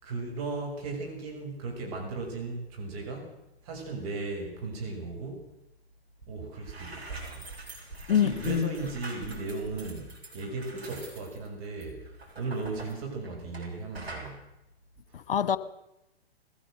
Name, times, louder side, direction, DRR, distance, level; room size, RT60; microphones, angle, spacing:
voice 1, 0.0-3.4 3.6-5.5 6.3-7.4 7.8-14.5 15.1-15.2, right 3 dB, 35° right, 6.5 m, -36 dB
sound 1, 6.2-6.3 6.6-13.7 13.9-14.3, right 2 dB, 70° right, 7.3 m, -44 dB
voice 2, 8.1-8.7 15.1-15.6, left 9 dB, 60° left, 1.4 m, -25 dB
21.5 x 16.0 x 8.0 m
figure-of-eight pair, 120°, 32 cm